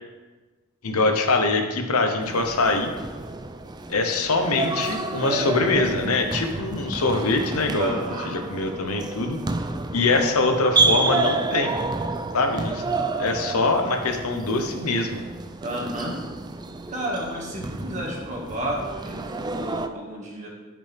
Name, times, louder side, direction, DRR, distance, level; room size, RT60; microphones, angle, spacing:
voice 1, 0.8-2.9 3.9-9.4 9.9-11.8 12.3-15.2, left 3 dB, 80° left, 4 dB, 0.9 m, -23 dB
sound 1, 2.2-19.9, right 3 dB, 20° right, 0.4 m, -29 dB
voice 2, 7.8-8.3 15.6-16.1 16.9-20.5, right 1 dB, 35° right, -3 dB, 1.8 m, -31 dB
12.0 x 5.2 x 3.4 m, 1.3 s
head